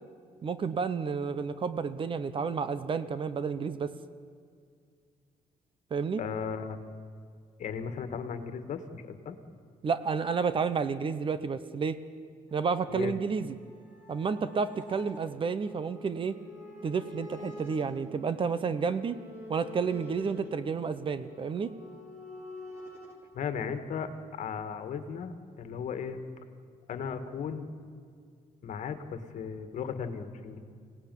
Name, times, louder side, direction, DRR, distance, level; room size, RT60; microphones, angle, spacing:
voice 1, 0.4-3.9 5.9-6.2 9.8-12.0 12.5-13.6 14.1-16.3 16.8-19.2 19.5-21.7, right 5 dB, 35° right, 13 dB, 0.9 m, -30 dB
voice 2, 6.2-6.8 7.6-9.4 12.9-13.1 23.3-26.2 26.9-27.7 28.6-30.6, left 6 dB, 60° left, 9 dB, 1.9 m, -36 dB
sound 1, 12.5-23.2, left 2 dB, 15° right, 4.6 m, -48 dB
25.5 x 17.5 x 9.3 m, 2.2 s
cardioid pair, 140°, 14 cm